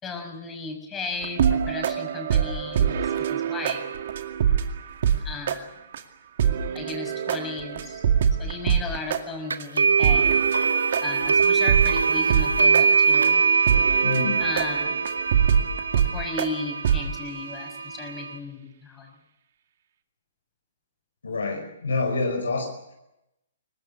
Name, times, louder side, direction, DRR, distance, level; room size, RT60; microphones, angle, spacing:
voice 1, 0.0-3.8 5.2-5.7 6.7-8.0 8.4-10.3 11.0-13.4 14.4-15.0 15.9-19.1, left 3 dB, 15° left, 5 dB, 5.8 m, -35 dB
sound 1, 1.2-5.2 5.5-5.6 5.9-6.0 6.4-9.2 9.6-9.7 10.0-12.5 12.7-12.8 13.2-13.3 13.7-16.5 16.8-17.0, right 8 dB, 55° right, 2.2 m, -24 dB
sound 2, 9.5-18.4, right 5 dB, 80° right, 1.5 m, -23 dB
voice 2, 14.0-14.4 21.2-22.9, left 3 dB, 75° left, 3 dB, 5.1 m, -27 dB
23.0 x 19.5 x 8.6 m, 0.90 s
figure-of-eight pair, 130°, 0 cm